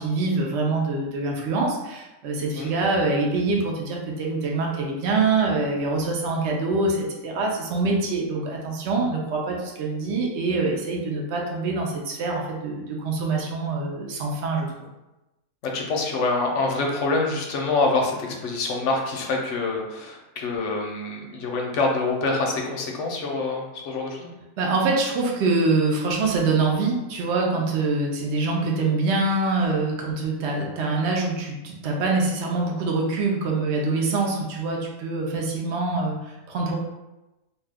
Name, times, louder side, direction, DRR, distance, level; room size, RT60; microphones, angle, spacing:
voice 1, 0.0-14.9 24.6-36.7, right 3 dB, 60° right, -1 dB, 0.8 m, -25 dB
voice 2, 15.6-24.3, left 3 dB, 65° left, 1 dB, 0.8 m, -26 dB
2.6 x 2.3 x 3.5 m, 1.0 s
omnidirectional pair, 1.5 m